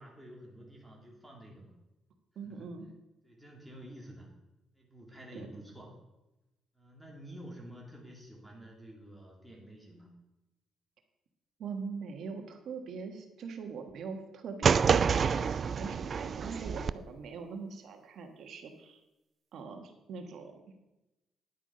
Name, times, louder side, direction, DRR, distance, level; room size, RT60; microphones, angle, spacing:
voice 1, 0.0-1.7 2.4-2.7 3.2-4.3 4.7-5.9 6.7-10.1, right 1 dB, ahead, -3 dB, 3.0 m, -50 dB
voice 2, 2.3-2.9 5.3-5.5 11.6-19.0 19.5-20.6, right 5 dB, 70° right, 5 dB, 1.6 m, -42 dB
sound 1, 14.6-16.9, right 6 dB, 45° right, 0.3 m, -27 dB
10.5 x 8.3 x 5.3 m, 0.98 s
cardioid pair, 90°, 0 cm